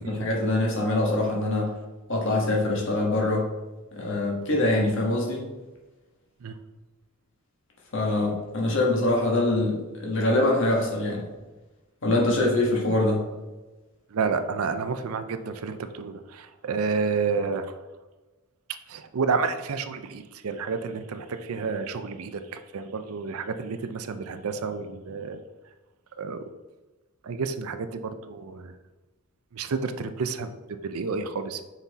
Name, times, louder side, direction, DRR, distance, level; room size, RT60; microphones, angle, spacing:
voice 1, 0.1-1.7 2.1-3.5 3.9-5.5 7.9-11.2 12.0-13.2, left 2 dB, 60° left, -2 dB, 1.5 m, -24 dB
voice 2, 14.1-17.7 18.9-25.4 26.2-26.4 27.2-28.7 29.5-30.5 30.8-31.6, right 4 dB, 75° right, 10 dB, 0.5 m, -30 dB
6.0 x 4.1 x 4.1 m, 1.2 s
head